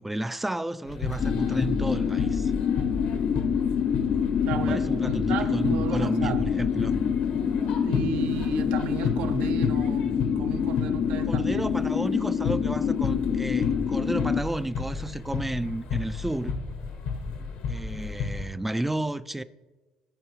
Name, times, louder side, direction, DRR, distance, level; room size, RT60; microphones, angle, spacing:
voice 1, 0.0-2.5 4.7-6.9 11.3-16.6 17.7-19.4, right 1 dB, 10° right, 0.3 m, -31 dB
sound 1, 0.9-18.5, left 4 dB, 75° left, 1.3 m, -33 dB
sound 2, 1.2-14.4, left 8 dB, 55° left, 0.4 m, -26 dB
voice 2, 4.4-6.5 7.6-11.7, right 8 dB, 75° right, 0.7 m, -34 dB
13.5 x 4.7 x 3.1 m
supercardioid pair, 85°, 2 cm